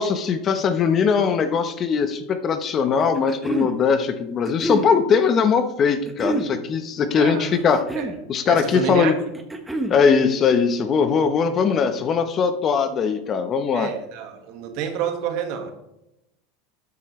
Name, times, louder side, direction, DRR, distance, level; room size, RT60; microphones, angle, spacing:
voice 1, 0.0-7.9 8.3-9.1 9.9-13.9, left 6 dB, 35° left, 9 dB, 1.1 m, -20 dB
sound 1, 3.0-3.7 4.4-4.9 6.1-6.5 7.6-8.2 9.3-10.0, right 2 dB, 10° right, 1.3 m, -27 dB
voice 2, 7.2-7.6 8.0-8.1 8.5-9.1 13.7-15.7, right 8 dB, 60° right, 6 dB, 1.8 m, -28 dB
13.0 x 8.0 x 3.3 m, 0.87 s
supercardioid pair, 120°, 0 cm